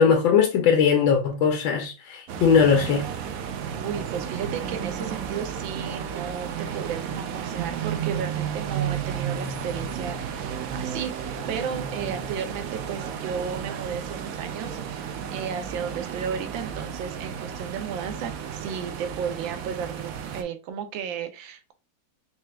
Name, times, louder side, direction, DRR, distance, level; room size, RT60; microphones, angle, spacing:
voice 1, 0.0-3.1, left 6 dB, 90° left, 1.6 m, -20 dB
sound 1, 2.3-20.4, right 8 dB, 70° right, 0.8 m, -33 dB
voice 2, 3.5-15.0 15.3-21.7, right 7 dB, 85° right, 1.5 m, -34 dB
4.4 x 3.3 x 2.3 m
omnidirectional pair, 2.0 m